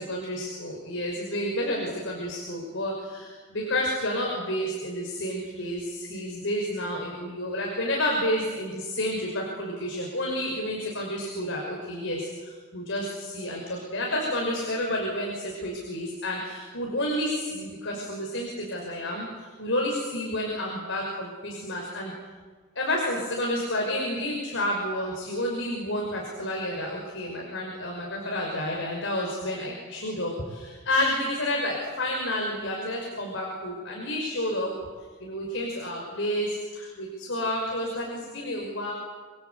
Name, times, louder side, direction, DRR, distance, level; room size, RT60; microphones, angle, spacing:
voice 1, 0.0-19.3 19.6-22.1 22.8-34.7 35.2-38.9, left 1 dB, 60° left, -1 dB, 5.9 m, -30 dB
28.5 x 23.0 x 8.4 m, 1.5 s
head